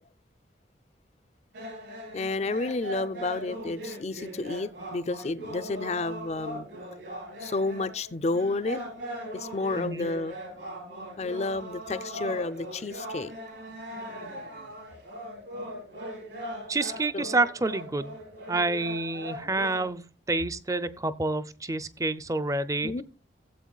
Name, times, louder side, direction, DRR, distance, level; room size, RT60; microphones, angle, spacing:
sound 1, 1.5-19.9, equal, 75° right, 4.4 m, -40 dB
voice 1, 2.1-6.7 7.4-8.8 9.3-10.3 11.2-13.3 17.1-17.3 22.8-23.0, left 3 dB, 35° left, 0.5 m, -31 dB
voice 2, 9.7-10.1 16.7-18.2 18.5-22.9, right 2 dB, 20° right, 0.5 m, -28 dB
16.5 x 7.8 x 2.3 m
head